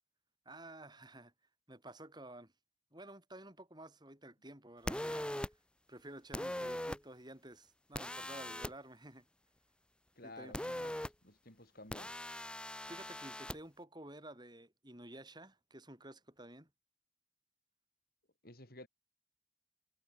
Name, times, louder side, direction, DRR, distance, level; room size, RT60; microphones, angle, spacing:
voice 1, 0.5-1.3 1.7-2.5 2.9-5.3 5.9-9.3 10.2-10.5 12.9-16.7, right 1 dB, 20° right, 7.4 m, -52 dB
sound 1, 4.9-5.5 6.3-7.0 7.9-8.7 10.5-11.1 11.9-13.6, left 1 dB, 5° left, 0.8 m, -40 dB
voice 2, 10.2-12.1 18.4-18.9, left 2 dB, 50° left, 6.6 m, -54 dB
head